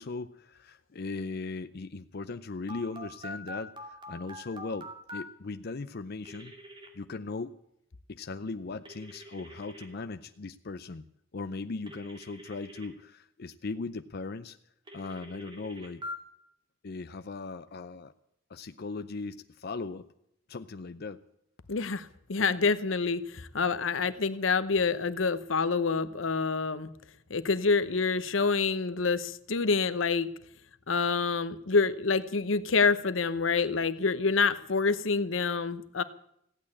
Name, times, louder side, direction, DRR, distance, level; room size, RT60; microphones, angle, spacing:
voice 1, 0.0-6.5 6.9-7.5 8.1-11.1 11.3-14.6 14.9-16.0 16.8-18.1 18.5-20.1 20.5-21.2, left 3 dB, 55° left, 9 dB, 0.6 m, -38 dB
Telephone, 2.7-5.2 6.2-6.9 8.9-9.9 11.9-12.9 14.9-16.2, left 1 dB, 25° right, 2.4 m, -43 dB
voice 2, 21.7-26.9 27.3-30.3 30.9-36.0, left 4 dB, 80° left, 13 dB, 0.9 m, -27 dB
15.5 x 8.7 x 9.7 m, 0.74 s
head